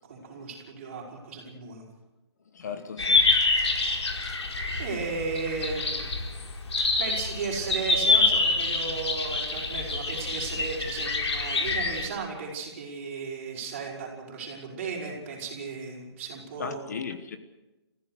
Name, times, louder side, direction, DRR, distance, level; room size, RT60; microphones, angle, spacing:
voice 1, 0.0-1.8 3.9-4.1 4.8-6.1 7.0-16.9, right 4 dB, 30° right, 5.6 m, -35 dB
voice 2, 2.5-3.8 4.2-4.4 6.8-6.9 16.6-17.4, left 6 dB, 40° left, 1.2 m, -38 dB
sound 1, 3.0-12.1, left 3 dB, 85° left, 4.7 m, -26 dB
29.5 x 15.5 x 6.4 m
hypercardioid pair, 175°, 14 cm